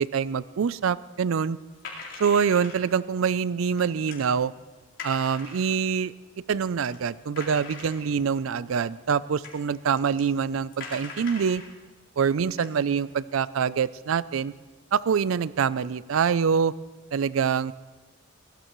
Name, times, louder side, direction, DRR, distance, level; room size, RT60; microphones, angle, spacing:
voice 1, 0.0-1.6 2.2-4.5 5.0-6.1 6.5-11.6 12.2-14.5 14.9-16.7 17.1-17.7, right 6 dB, 80° right, 18 dB, 0.4 m, -25 dB
sound 1, 1.8-2.9 3.8-4.2 5.0-5.8 6.5-6.6 6.9-7.0 7.4-8.3 9.1-9.2 9.4-9.6 10.0-10.2 10.7-11.7 12.2-12.3 12.6-13.2, left 4 dB, 65° left, 4.1 m, -41 dB
23.5 x 18.5 x 3.1 m, 1.2 s
head